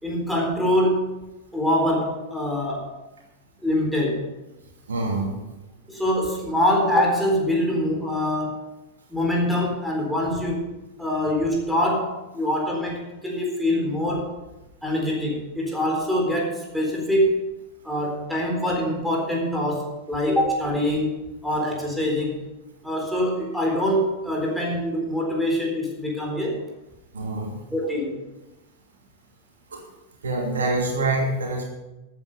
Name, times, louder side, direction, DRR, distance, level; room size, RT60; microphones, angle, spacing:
voice 1, 0.0-1.1 1.5-2.9 3.6-4.3 5.9-8.6 9.1-10.7 11.0-14.3 14.8-17.4 17.8-21.1 21.4-22.4 22.8-26.6 27.7-28.2, left 1 dB, ahead, -1 dB, 4.1 m, -24 dB
voice 2, 4.9-5.3 27.1-27.6 29.7-29.8 30.2-31.6, right 2 dB, 70° right, 0 dB, 2.7 m, -25 dB
14.0 x 9.2 x 5.5 m, 1.0 s
figure-of-eight pair, 90°, 0 cm